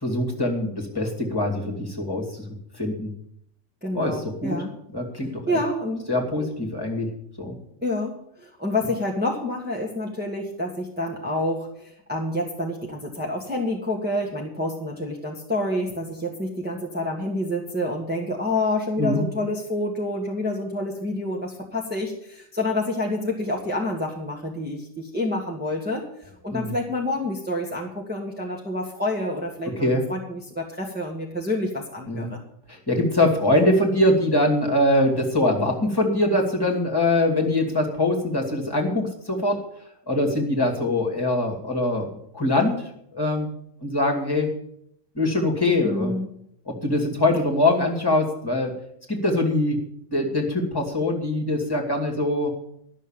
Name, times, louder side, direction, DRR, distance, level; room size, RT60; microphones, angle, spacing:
voice 1, 0.0-2.4 2.8-3.1 3.9-4.6 4.9-5.4 6.1-7.1 7.4-7.6 19.0-19.2 26.5-26.7 29.8-30.0 32.1-32.3 32.7-39.6 40.1-43.5 43.8-44.5 45.2-46.1 46.7-48.7 49.1-49.8 50.1-52.5, left 1 dB, 15° left, 0 dB, 2.5 m, -23 dB
voice 2, 3.8-4.7 5.5-6.0 7.8-26.0 26.4-32.4 45.8-46.3, left 1 dB, 5° right, -2 dB, 1.5 m, -28 dB
12.0 x 6.5 x 8.9 m, 0.71 s
omnidirectional pair, 1.4 m